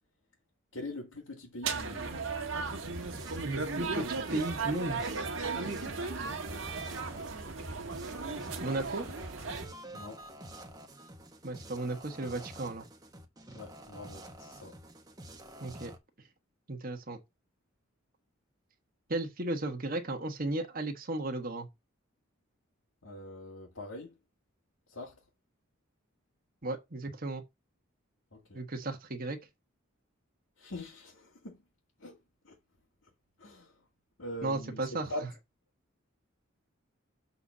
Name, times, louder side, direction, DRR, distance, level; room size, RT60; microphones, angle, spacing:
voice 1, 0.7-2.1 5.5-5.7 9.9-10.2 13.5-14.8 23.0-24.1 24.9-25.2 28.3-28.6 30.6-31.6 32.0-32.2 32.4-32.6 33.4-33.8 34.2-35.3, left 1 dB, 75° left, 2.0 m, -43 dB
sound 1, 1.6-9.7, right 4 dB, 70° right, 1.5 m, -36 dB
sound 2, 2.6-16.0, right 1 dB, 20° right, 1.1 m, -49 dB
voice 2, 3.4-5.0 8.6-9.1 11.4-12.8 15.6-15.9 16.7-17.2 19.1-21.7 26.6-27.4 28.5-29.4 34.4-35.1, right 2 dB, 45° right, 1.4 m, -35 dB
6.9 x 4.1 x 6.1 m
head